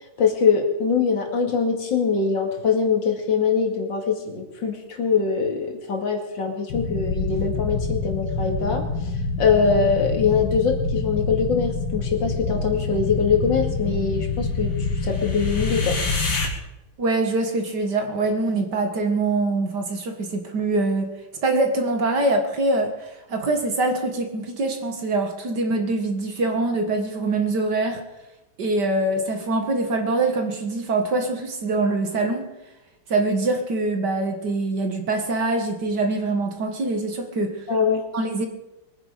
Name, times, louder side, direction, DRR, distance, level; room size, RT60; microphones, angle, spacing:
voice 1, 0.2-8.9 9.4-14.7 15.0-16.0 37.7-38.0, left 5 dB, 55° left, 3 dB, 2.8 m, -23 dB
sound 1, 6.7-16.5, left 4 dB, 85° left, 3.0 m, -26 dB
voice 2, 17.0-21.1 21.4-28.0 28.6-32.5 33.1-37.6 38.1-38.5, right 2 dB, 50° right, 4 dB, 2.2 m, -24 dB
23.0 x 9.9 x 5.0 m, 0.97 s
omnidirectional pair, 2.4 m